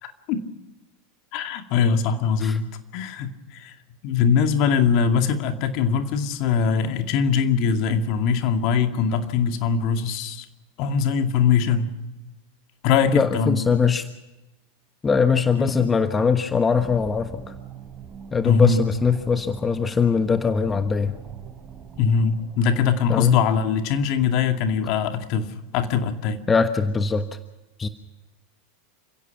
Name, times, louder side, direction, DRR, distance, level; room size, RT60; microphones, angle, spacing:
voice 1, 0.0-0.4 1.3-2.6 2.9-3.7 4.0-10.5 10.8-11.9 12.8-13.6 15.6-15.9 18.4-18.8 22.0-26.4, left 6 dB, 50° left, 6 dB, 2.3 m, -22 dB
voice 2, 13.1-14.1 15.0-17.5 18.3-21.1 23.1-23.4 26.5-27.3 27.8-27.9, left 5 dB, 20° left, 9 dB, 1.2 m, -21 dB
sound 1, 16.7-22.6, right 7 dB, 30° right, 4.0 m, -43 dB
29.0 x 16.5 x 5.9 m, 1.0 s
hypercardioid pair, 85°, 0 cm